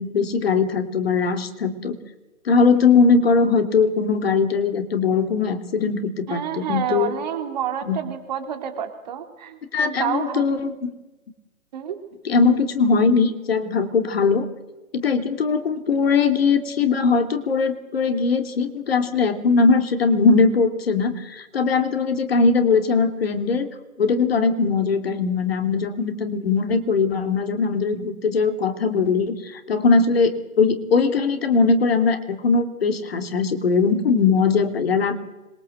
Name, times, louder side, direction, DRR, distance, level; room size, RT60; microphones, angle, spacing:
voice 1, 0.0-1.9 2.4-7.1 7.9-8.0 9.7-10.9 12.2-14.5 14.9-23.7 24.0-35.1, left 4 dB, 45° left, 7 dB, 3.1 m, -20 dB
voice 2, 6.3-10.4 11.7-11.9, right 9 dB, 30° right, 7 dB, 3.2 m, -29 dB
26.0 x 23.0 x 8.0 m, 1.0 s
figure-of-eight pair, 150°, 43 cm